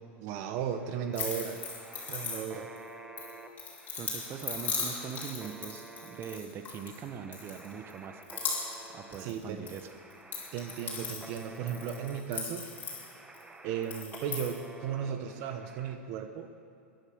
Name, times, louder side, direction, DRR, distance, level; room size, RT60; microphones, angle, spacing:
voice 1, 0.2-1.6 2.1-2.7 9.2-9.7 10.5-12.7 13.6-16.5, right 8 dB, 55° right, 8 dB, 1.2 m, -35 dB
sound 1, 0.7-15.9, right 2 dB, 10° right, 1.5 m, -51 dB
sound 2, 1.1-2.8 3.2-7.0 7.3-7.9 8.2-8.9 9.1-9.8 10.1-13.4 13.8-14.6, left 5 dB, 25° left, 4.7 m, -38 dB
voice 2, 4.0-8.2 8.9-9.9, right 7 dB, 35° right, 8 dB, 1.3 m, -42 dB
21.0 x 11.0 x 6.4 m, 2.6 s
hypercardioid pair, 110°, 7 cm